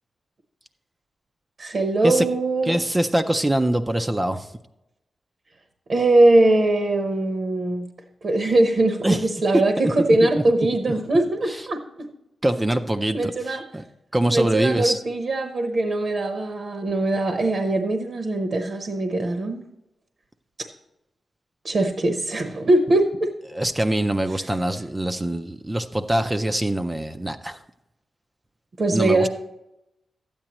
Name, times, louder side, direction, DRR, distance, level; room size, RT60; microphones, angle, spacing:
voice 1, 1.6-2.7 5.9-7.9 8.2-12.1 13.1-13.6 14.2-19.6 21.6-23.3 24.3-24.5 28.8-29.3, right 2 dB, 45° right, 6 dB, 0.9 m, -21 dB
voice 2, 2.7-4.5 9.0-9.2 10.0-10.4 11.5-11.6 12.4-13.8 14.1-15.0 23.5-27.6 28.9-29.3, right 1 dB, 15° right, 8 dB, 0.4 m, -23 dB
12.5 x 8.7 x 3.0 m, 0.89 s
wide cardioid pair, 140°, 0 cm